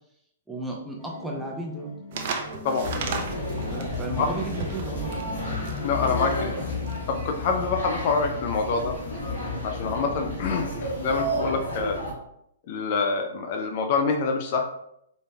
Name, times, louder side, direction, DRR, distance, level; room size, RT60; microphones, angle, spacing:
voice 1, 0.5-1.9 3.6-5.1, right 2 dB, 5° right, -2 dB, 0.9 m, -34 dB
sound 1, 1.0-7.2, equal, 20° left, 1.8 m, -41 dB
sound 2, 2.1-7.6, right 5 dB, 50° right, 0.7 m, -36 dB
Council House Steps, 2.8-12.1, left 2 dB, 75° left, 1.7 m, -31 dB
voice 2, 5.8-6.5 7.1-8.9 9.6-12.0 12.7-14.6, left 4 dB, 45° left, 4 dB, 0.5 m, -26 dB
5.1 x 4.1 x 2.3 m, 0.75 s
figure-of-eight pair, 120°, 0 cm